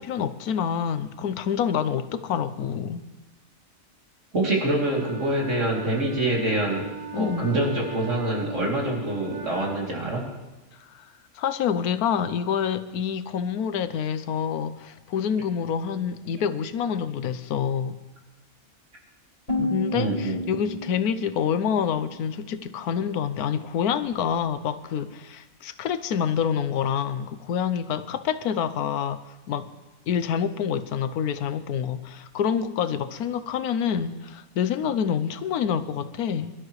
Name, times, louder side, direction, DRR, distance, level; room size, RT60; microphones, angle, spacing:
voice 1, 0.0-3.1 7.1-7.5 10.9-11.1 11.3-18.0 19.7-29.2 29.5-29.7 30.1-36.5, left 8 dB, 85° left, 12 dB, 1.2 m, -27 dB
voice 2, 4.3-10.2 19.6-20.4, right 1 dB, 55° right, -3 dB, 3.3 m, -26 dB
Wind instrument woodwind instrument, 4.8-10.0, right 4 dB, 20° right, 0.9 m, -38 dB
sound 1, 19.5-22.5, left 1 dB, 45° left, 4.2 m, -32 dB
22.5 x 12.5 x 3.2 m, 1.1 s
omnidirectional pair, 1.6 m